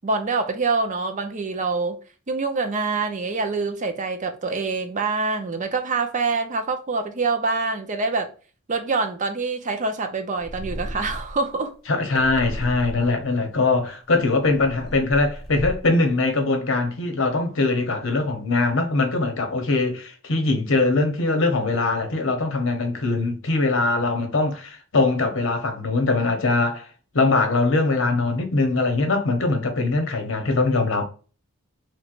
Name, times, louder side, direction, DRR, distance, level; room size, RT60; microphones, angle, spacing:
voice 1, 0.0-2.0 2.3-8.3 8.7-11.7, right 4 dB, 35° right, 0.5 m, -25 dB
Purr, 10.4-11.5 12.1-13.2 13.9-16.0, equal, ahead, 1.0 m, -34 dB
voice 2, 11.9-26.9 27.1-31.0, left 3 dB, 60° left, 0.9 m, -22 dB
3.2 x 3.1 x 2.4 m
head